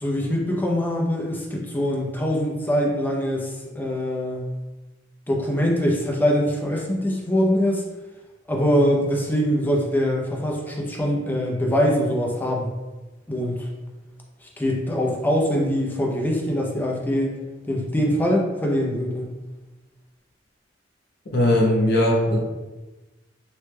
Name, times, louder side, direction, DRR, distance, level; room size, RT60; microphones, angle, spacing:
voice 1, 0.0-4.5 5.3-7.8 8.5-12.7 13.3-13.5 14.6-17.3 17.7-19.3, equal, 10° left, -1 dB, 0.5 m, -23 dB
voice 2, 21.3-22.4, left 1 dB, 60° left, -3 dB, 0.8 m, -19 dB
3.1 x 2.1 x 3.3 m, 1.1 s
head